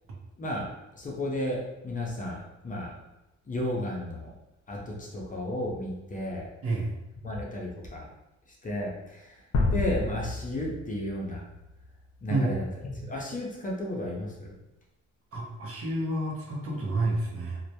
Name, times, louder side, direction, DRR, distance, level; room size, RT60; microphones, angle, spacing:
voice 1, 1.0-2.9 3.5-4.3 4.7-6.5 7.2-8.1 8.6-9.4 9.7-11.4 12.2-14.5, left 1 dB, 25° left, -2 dB, 0.5 m, -33 dB
sound 1, 9.5-12.5, left 3 dB, 70° left, 0.6 m, -31 dB
voice 2, 15.3-17.6, right 2 dB, 50° right, -2 dB, 0.7 m, -29 dB
2.1 x 2.1 x 2.8 m, 0.95 s
cardioid pair, 90°, 30 cm